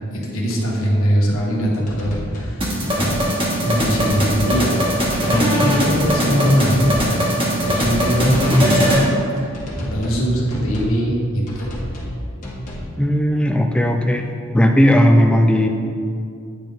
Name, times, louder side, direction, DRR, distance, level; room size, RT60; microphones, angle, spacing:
voice 1, 0.1-2.6 2.9-3.1 3.6-5.0 5.3-7.3 7.6-9.0 9.4-11.7, equal, 70° left, -3 dB, 1.2 m, -21 dB
sound 1, 1.9-2.6 2.8-3.3 3.8-4.5 4.7-5.2 5.7-6.4 6.7-7.1 7.6-9.0 9.5-10.2 10.5-11.0 11.5-12.1 12.4-12.9, left 1 dB, 35° left, 1.3 m, -31 dB
sound 2, 2.6-9.1, equal, 25° right, 1.1 m, -20 dB
voice 2, 12.9-14.3 14.5-15.7, equal, 5° left, 4 dB, 0.3 m, -15 dB
9.3 x 3.5 x 3.8 m, 2.4 s
head